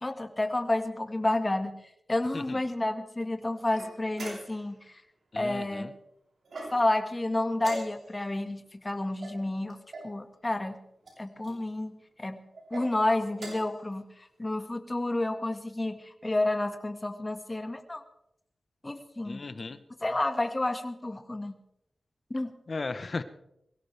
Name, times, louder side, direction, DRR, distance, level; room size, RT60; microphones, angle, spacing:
voice 1, 0.0-1.8 2.1-5.0 5.4-5.9 6.7-9.8 10.0-10.8 11.2-11.9 12.2-12.4 12.7-14.1 14.4-18.0 18.8-19.5 20.0-21.6 22.3-22.5, left 2 dB, 25° left, 7 dB, 1.8 m, -30 dB
sound 1, 3.7-4.8 6.5-7.0 7.6-8.3 9.2-10.1 11.0-11.6 12.5-12.9 13.3-13.8, right 1 dB, 75° right, 7.5 m, -42 dB
voice 2, 5.3-5.9 19.2-19.8 22.7-23.2, left 3 dB, 50° left, 11 dB, 1.1 m, -36 dB
23.0 x 17.0 x 3.4 m, 0.80 s
wide cardioid pair, 75°, 0 cm